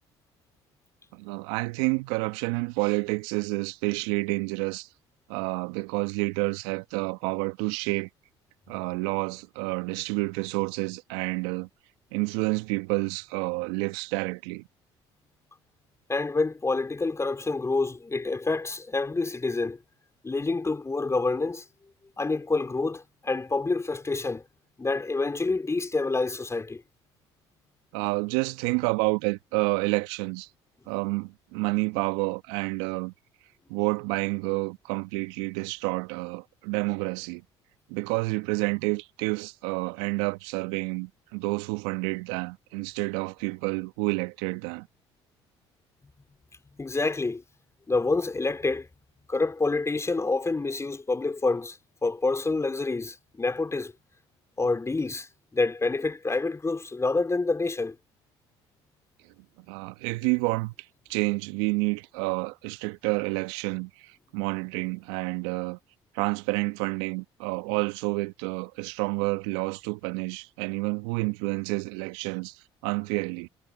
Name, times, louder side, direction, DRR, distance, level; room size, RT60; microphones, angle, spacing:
voice 1, 1.1-4.9 5.3-8.1 8.7-11.7 12.1-14.7 27.9-30.5 30.9-33.1 33.7-37.4 37.9-44.9 59.7-60.7 61.1-65.8 66.1-72.6 72.8-73.5, right 27 dB, 75° right, 1.7 m, -29 dB
voice 2, 16.1-19.8 20.2-21.6 22.2-24.4 24.8-26.8 46.8-47.4 47.9-48.9 49.3-53.9 54.6-58.0, left 3 dB, 20° left, 4.2 m, -27 dB
hypercardioid pair, 60°, 14 cm